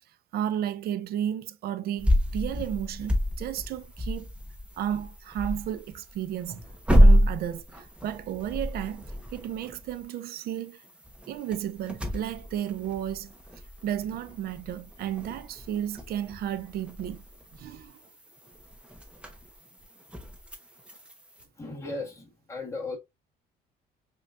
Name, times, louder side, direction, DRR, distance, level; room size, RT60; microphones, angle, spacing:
voice 1, 0.3-4.3 4.8-6.6 7.0-10.8 11.3-13.3 13.8-17.2 17.6-18.0, right 10 dB, 65° right, 0.5 m, -33 dB
sound 1, 2.0-21.4, equal, 5° right, 0.9 m, -29 dB
voice 2, 21.6-23.0, left 3 dB, 15° left, 1.6 m, -36 dB
5.1 x 2.8 x 2.4 m
cardioid pair, 110°, 17 cm